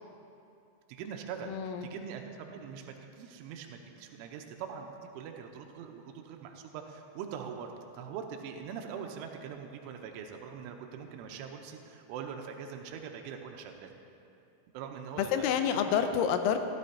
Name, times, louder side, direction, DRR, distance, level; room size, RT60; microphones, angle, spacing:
voice 1, 0.9-13.9 14.7-15.6, right 7 dB, 85° right, 3 dB, 3.0 m, -43 dB
voice 2, 1.4-1.9 15.2-16.6, left 8 dB, 85° left, 7 dB, 3.3 m, -28 dB
15.5 x 12.5 x 2.8 m, 2.7 s
omnidirectional pair, 6.0 m